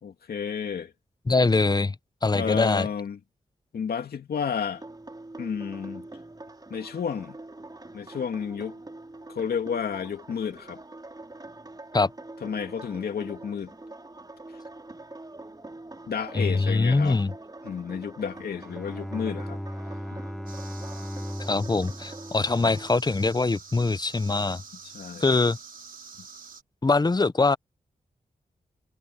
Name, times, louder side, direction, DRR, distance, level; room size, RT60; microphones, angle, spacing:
voice 1, 0.0-0.9 2.3-3.2 3.7-4.8 5.4-6.1 6.7-7.4 7.9-8.8 9.3-10.8 12.4-13.7 16.1-17.2 17.6-19.6 24.8-25.2, left 7 dB, 80° left, 2.5 m, -31 dB
voice 2, 1.3-1.9 2.2-2.9 11.9-12.1 16.3-17.3 21.4-24.6 25.2-25.6 26.8-27.6, left 3 dB, 25° left, 0.7 m, -23 dB
sound 1, 4.7-22.9, right 2 dB, 25° right, 3.9 m, -44 dB
Bowed string instrument, 18.2-23.5, equal, ahead, 1.4 m, -38 dB
sound 2, 20.5-26.6, right 5 dB, 70° right, 6.4 m, -47 dB
cardioid pair, 50°, 16 cm